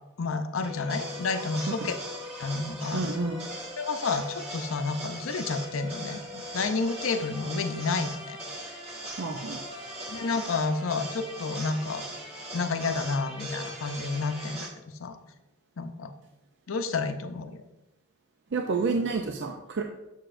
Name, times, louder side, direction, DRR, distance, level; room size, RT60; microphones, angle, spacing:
voice 1, 0.2-2.0 2.4-3.1 3.8-8.4 10.1-12.0 12.5-14.7 15.0-15.2 15.8-16.1 16.7-17.6, left 4 dB, 70° left, 9 dB, 0.6 m, -30 dB
sound 1, 0.6-14.7, equal, 30° right, 1.6 m, -39 dB
voice 2, 2.9-3.4 9.2-9.6 18.5-19.8, right 4 dB, 60° right, 3 dB, 0.5 m, -29 dB
7.5 x 6.8 x 2.5 m, 0.96 s
head